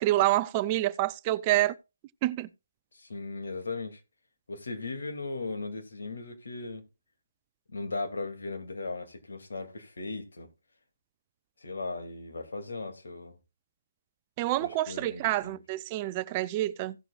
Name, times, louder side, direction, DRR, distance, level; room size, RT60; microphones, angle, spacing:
voice 1, 0.0-1.8 2.2-2.5 14.4-17.0, right 15 dB, 25° right, 0.4 m, -27 dB
voice 2, 2.9-4.0 4.5-6.8 7.7-10.5 11.6-13.4 14.6-15.6, left 3 dB, 70° left, 2.2 m, -37 dB
17.0 x 6.7 x 2.3 m
figure-of-eight pair, 150°, 0 cm